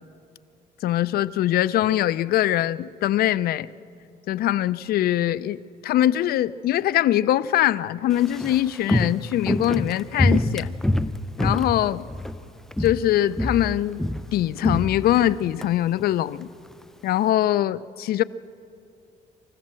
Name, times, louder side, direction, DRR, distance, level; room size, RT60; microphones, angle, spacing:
voice 1, 0.8-3.7 4.3-10.7 11.4-12.0 12.8-14.0 14.3-16.5 17.0-18.2, left 13 dB, 65° left, 19 dB, 0.5 m, -22 dB
Walk footsteps, 8.1-12.4 12.7-13.1 13.4-15.7 16.0-16.1, left 1 dB, 5° left, 0.5 m, -25 dB
26.0 x 15.0 x 7.6 m, 2.5 s
cardioid pair, 110°, 17 cm